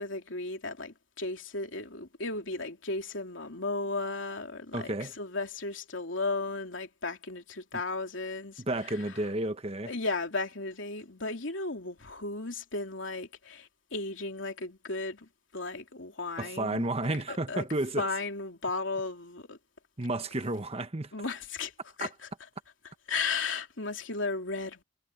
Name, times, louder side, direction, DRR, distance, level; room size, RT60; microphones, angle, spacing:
voice 1, 0.0-8.6 8.9-9.0 9.9-16.8 17.3-17.6 18.0-19.6 21.1-21.7 22.0-22.1 23.1-24.8, left 3 dB, 75° left, 3.1 m, -35 dB
voice 2, 4.7-5.1 8.6-9.9 16.4-18.1 20.0-21.1 22.0-22.1, right 2 dB, 30° right, 1.3 m, -32 dB
head